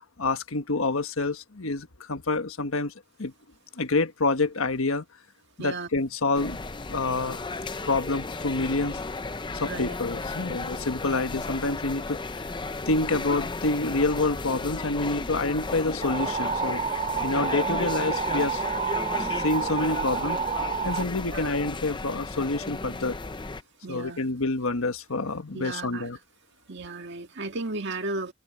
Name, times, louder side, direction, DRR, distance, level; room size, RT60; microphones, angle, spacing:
voice 1, 0.2-2.9 3.2-3.3 3.7-5.0 5.6-6.6 6.9-7.4 7.9-9.0 9.6-12.4 12.9-16.8 17.2-18.6 19.2-20.4 20.8-23.2 23.9-26.2, left 3 dB, 75° left, 1.4 m, -27 dB
voice 2, 5.6-5.9 9.6-9.8 21.3-21.5 23.8-24.3 25.5-26.1 26.7-28.3, right 3 dB, 55° right, 1.8 m, -34 dB
sound 1, 6.3-23.6, left 3 dB, 20° left, 0.7 m, -34 dB
sound 2, 16.0-21.0, right 6 dB, 30° right, 0.6 m, -29 dB
head